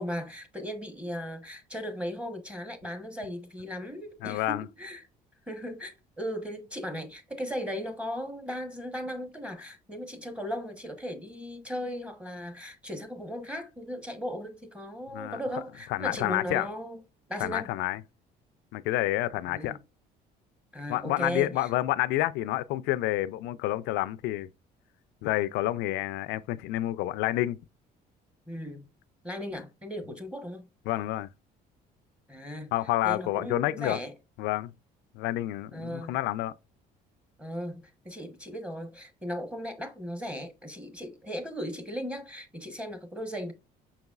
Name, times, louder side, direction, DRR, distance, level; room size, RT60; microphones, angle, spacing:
voice 1, 0.0-5.1 5.5-17.0 17.3-17.7 19.4-19.8 20.7-21.7 28.5-28.9 29.2-30.7 32.3-32.7 33.0-34.1 35.7-36.2 37.4-43.5, equal, 5° right, 1.0 m, -37 dB
voice 2, 4.2-4.7 15.1-15.4 15.9-16.7 17.4-18.0 18.7-19.8 20.9-24.5 25.2-27.6 30.9-31.3 32.7-34.0 34.4-34.7 35.1-36.5, left 16 dB, 90° left, 0.4 m, -29 dB
5.8 x 4.0 x 2.3 m
cardioid pair, 110°, 17 cm